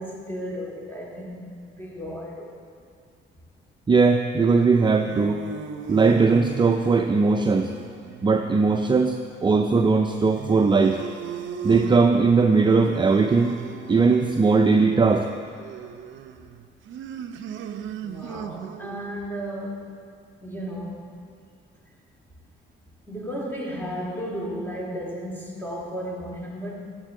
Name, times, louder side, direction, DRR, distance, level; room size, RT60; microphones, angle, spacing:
voice 1, 0.0-2.6 18.0-19.9 20.4-21.2 23.1-26.8, equal, 10° left, -3 dB, 2.2 m, -34 dB
voice 2, 3.9-5.4 5.9-7.7 8.2-11.0 11.6-13.6 13.9-15.3, right 4 dB, 25° right, 5 dB, 0.5 m, -19 dB
sound 1, 4.6-19.1, right 6 dB, 75° right, 0.6 m, -38 dB
13.5 x 8.9 x 3.8 m, 2.3 s
cardioid pair, 90°, 20 cm